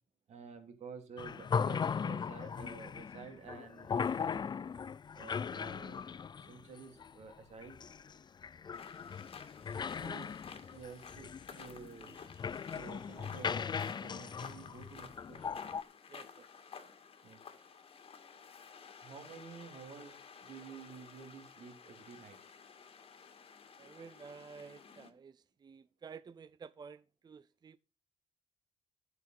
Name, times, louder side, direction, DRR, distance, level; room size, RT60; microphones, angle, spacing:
voice 1, 0.3-4.4 5.1-6.1 6.3-7.8 10.0-10.3 10.7-12.2 12.7-15.6 17.2-17.8 19.0-22.4, right 5 dB, 75° right, 3.2 m, -51 dB
sound 1, 1.2-15.8, left 6 dB, 40° left, 0.5 m, -38 dB
sound 2, 8.7-25.1, left 6 dB, 55° left, 2.1 m, -53 dB
voice 2, 9.8-10.1 16.1-16.5 23.8-27.8, right 5 dB, 35° right, 0.5 m, -52 dB
10.5 x 8.0 x 5.9 m
cardioid pair, 90°, 12 cm